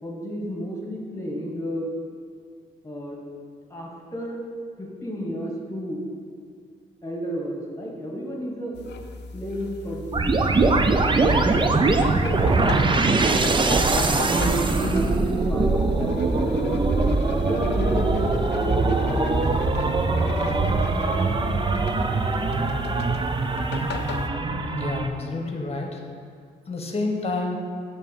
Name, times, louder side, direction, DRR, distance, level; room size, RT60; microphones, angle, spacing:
voice 1, 0.0-1.9 2.8-3.2 3.7-4.4 4.8-6.1 7.0-8.8 9.3-12.9 13.4-17.1 17.4-19.8, equal, 15° left, -1 dB, 1.5 m, -32 dB
sound 1, 8.7-24.3, left 4 dB, 60° left, 0.5 m, -37 dB
sound 2, 10.1-25.1, right 3 dB, 25° right, 0.5 m, -22 dB
voice 2, 24.7-26.0 26.7-27.6, left 3 dB, 30° left, 2 dB, 1.1 m, -29 dB
6.6 x 2.9 x 5.4 m, 2.1 s
hypercardioid pair, 50°, 20 cm